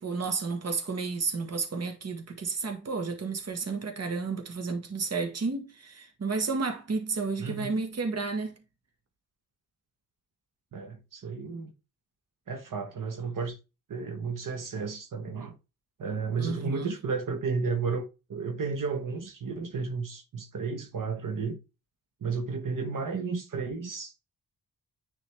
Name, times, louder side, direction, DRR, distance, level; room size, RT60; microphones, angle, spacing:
voice 1, 0.0-8.6 16.4-16.9, right 4 dB, 45° right, 1.4 m, -32 dB
voice 2, 7.4-7.7 10.7-11.7 12.5-13.6 13.9-15.6 16.0-21.6 22.2-24.2, right 5 dB, 65° right, 1.3 m, -33 dB
9.7 x 3.9 x 3.4 m
wide cardioid pair, 120°, 36 cm